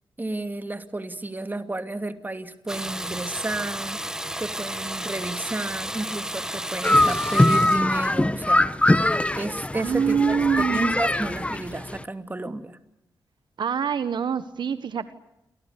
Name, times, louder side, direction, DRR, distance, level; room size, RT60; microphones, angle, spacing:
voice 1, 0.2-4.0 4.4-8.7 9.4-12.8, right 2 dB, 25° right, 8 dB, 2.6 m, -32 dB
Water tap faucet / Bathtub (filling or washing), 2.7-7.8, right 1 dB, 10° right, 1.7 m, -32 dB
sound 1, 6.8-12.0, left 1 dB, 15° left, 1.3 m, -22 dB
voice 2, 9.7-11.0 13.6-15.1, right 7 dB, 75° right, 12 dB, 1.4 m, -25 dB
29.5 x 25.0 x 6.8 m, 0.86 s
cardioid pair, 70°, 8 cm